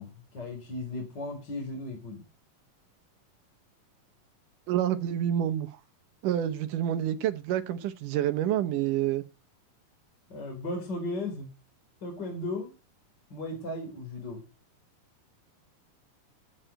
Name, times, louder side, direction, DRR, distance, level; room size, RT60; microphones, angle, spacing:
voice 1, 0.0-2.2 10.3-11.5 12.0-12.7 13.3-14.4, left 2 dB, 30° left, 4.5 m, -36 dB
voice 2, 4.7-5.7 6.2-9.2, right 11 dB, 75° right, 2.5 m, -28 dB
14.0 x 6.5 x 9.0 m
omnidirectional pair, 3.9 m